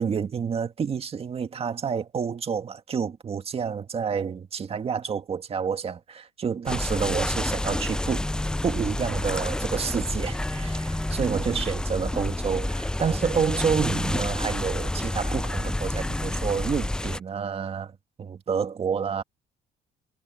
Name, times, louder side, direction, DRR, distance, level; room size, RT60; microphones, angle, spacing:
voice 1, 0.0-8.3 8.6-19.2, right 6 dB, 35° right, 1.9 m, -29 dB
sound 1, 6.7-17.2, left 1 dB, 5° left, 0.4 m, -29 dB
cardioid pair, 110°, 17 cm